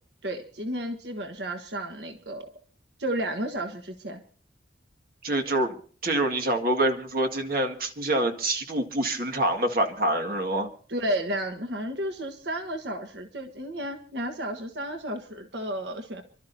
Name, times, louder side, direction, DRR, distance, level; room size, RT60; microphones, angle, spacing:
voice 1, 0.2-2.5 3.0-4.2 10.9-16.2, right 1 dB, 80° right, 5 dB, 1.4 m, -32 dB
voice 2, 5.2-5.8 6.0-10.7, right 1 dB, 55° right, 4 dB, 2.0 m, -26 dB
30.0 x 12.5 x 2.7 m, 0.44 s
head